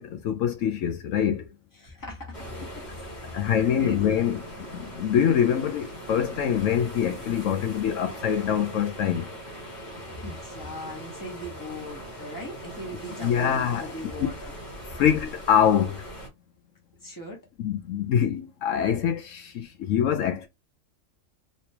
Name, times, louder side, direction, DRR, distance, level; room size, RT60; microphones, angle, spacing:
voice 1, 0.0-1.5 3.3-9.3 13.2-13.9 14.9-16.0 17.6-20.5, left 8 dB, 75° left, 0.9 m, -24 dB
voice 2, 1.7-4.0 10.2-14.5 17.0-17.5, equal, 15° left, 1.1 m, -40 dB
sound 1, 2.3-16.3, equal, 35° left, 1.5 m, -41 dB
3.1 x 2.9 x 2.8 m
omnidirectional pair, 1.4 m